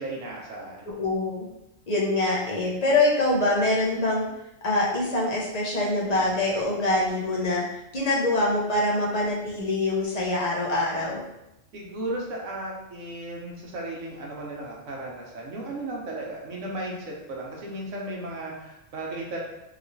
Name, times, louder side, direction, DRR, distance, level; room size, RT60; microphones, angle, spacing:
voice 1, 0.0-0.9 11.7-19.4, right 1 dB, 75° right, -2 dB, 1.1 m, -35 dB
voice 2, 0.9-1.5 1.9-4.3 4.6-7.6 7.9-11.2, left 2 dB, 45° left, -4 dB, 0.6 m, -24 dB
3.0 x 2.9 x 2.6 m, 0.87 s
omnidirectional pair, 1.3 m